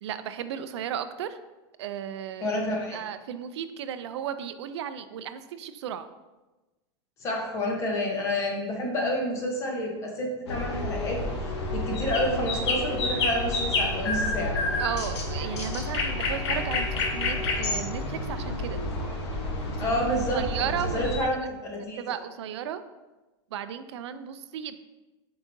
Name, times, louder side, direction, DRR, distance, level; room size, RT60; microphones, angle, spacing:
voice 1, 0.0-1.4 1.8-2.5 2.9-6.1 14.8-18.8 19.8-20.0 20.3-21.3 22.0-22.8 23.5-24.8, right 9 dB, 85° right, 11 dB, 0.5 m, -34 dB
voice 2, 2.4-3.0 7.2-11.2 11.7-14.6 19.8-20.6 20.9-22.0, left 1 dB, 20° left, 0 dB, 0.9 m, -29 dB
sound 1, 10.5-21.2, left 2 dB, 75° left, 1.2 m, -29 dB
7.4 x 4.8 x 2.7 m, 1.1 s
supercardioid pair, 180°, 14 cm